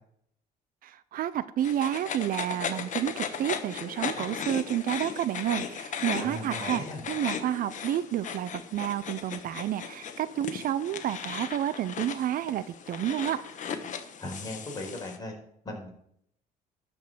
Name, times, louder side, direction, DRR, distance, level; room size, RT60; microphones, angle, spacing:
voice 1, 0.8-13.4, right 11 dB, 60° right, 16 dB, 0.5 m, -30 dB
sound 1, 1.6-15.2, left 7 dB, 45° left, 1.3 m, -37 dB
voice 2, 6.2-7.0 14.2-15.3 15.6-15.9, left 1 dB, 25° left, 0 dB, 4.5 m, -37 dB
12.5 x 5.3 x 7.8 m, 0.70 s
cardioid pair, 110°, 17 cm